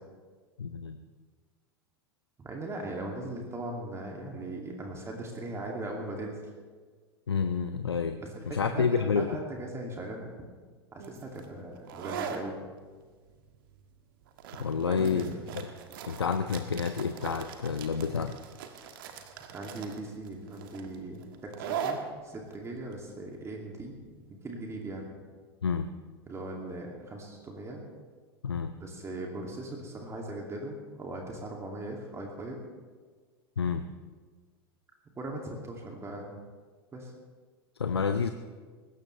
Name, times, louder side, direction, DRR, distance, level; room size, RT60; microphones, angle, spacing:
voice 1, 0.6-1.0 7.3-8.2 8.5-9.4 14.6-15.3 16.1-18.3 25.6-25.9 28.4-28.7 33.6-33.9 37.8-38.3, left 6 dB, 80° left, 9 dB, 0.6 m, -29 dB
voice 2, 2.4-6.4 8.5-10.3 10.9-12.6 14.8-15.6 19.5-22.0 22.2-24.0 24.3-25.0 26.3-27.8 28.8-32.6 35.2-36.4 36.9-37.1, right 2 dB, 20° right, 0 dB, 2.5 m, -39 dB
sound 1, 11.0-24.4, right 7 dB, 60° right, 1.5 m, -41 dB
19.5 x 16.5 x 3.3 m, 1.5 s
figure-of-eight pair, 85°, 13 cm